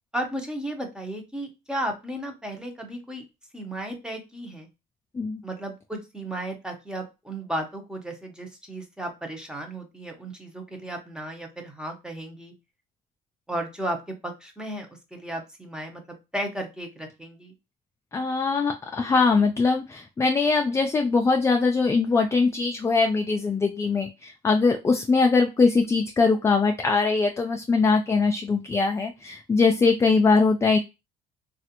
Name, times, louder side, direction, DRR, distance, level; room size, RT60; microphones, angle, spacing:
voice 1, 0.1-3.2 3.5-4.7 5.4-12.5 13.5-14.0 14.2-17.5, right 1 dB, 5° right, 3 dB, 0.8 m, -34 dB
voice 2, 18.1-30.8, left 4 dB, 15° left, 4 dB, 0.3 m, -22 dB
3.2 x 2.4 x 2.9 m, 0.25 s
cardioid pair, 110°, 17 cm